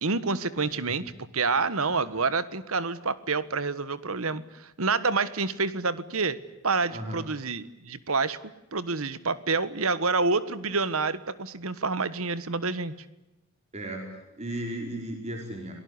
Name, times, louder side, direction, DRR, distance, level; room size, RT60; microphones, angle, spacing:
voice 1, 0.0-1.0 1.3-6.4 6.6-8.4 8.7-12.9, right 4 dB, 70° right, 15 dB, 1.4 m, -28 dB
voice 2, 6.9-7.2 13.7-14.1 14.4-15.7, right 1 dB, 30° right, 2 dB, 4.8 m, -35 dB
27.5 x 19.0 x 9.8 m, 0.99 s
head